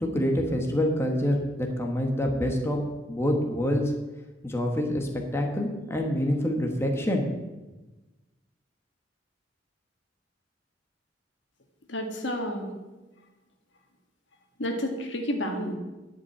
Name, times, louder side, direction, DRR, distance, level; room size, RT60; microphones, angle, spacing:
voice 1, 0.0-3.9 4.4-7.2, equal, 15° left, 2 dB, 1.2 m, -26 dB
voice 2, 11.9-12.7 14.6-15.8, equal, 70° left, 3 dB, 1.8 m, -30 dB
10.5 x 5.4 x 8.6 m, 1.1 s
head